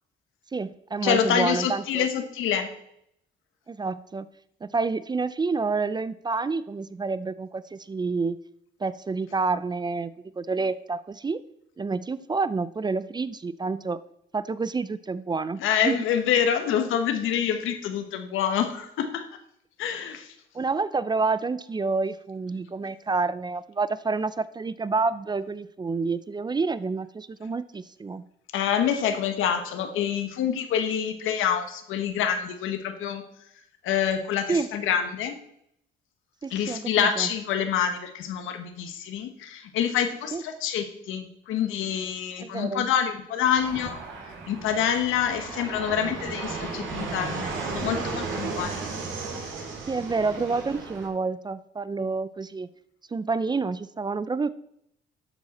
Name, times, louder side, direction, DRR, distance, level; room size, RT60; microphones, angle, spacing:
voice 1, 0.5-2.1 3.7-4.3 4.6-8.4 8.8-11.4 11.8-14.0 14.3-16.0 20.5-28.2 34.5-34.7 36.4-37.3 40.3-40.4 42.4-42.9 49.9-52.7 53.1-54.5, right 4 dB, 20° right, 15 dB, 0.4 m, -28 dB
voice 2, 1.0-2.7 15.6-19.3 19.8-20.3 28.5-33.2 33.8-35.4 36.5-44.0 44.5-48.8, left 8 dB, 85° left, 7 dB, 1.1 m, -26 dB
Fixed-wing aircraft airplane, 43.4-51.1, right 4 dB, 75° right, 2.3 m, -34 dB
12.5 x 4.8 x 4.2 m, 0.75 s
cardioid pair, 90°, 20 cm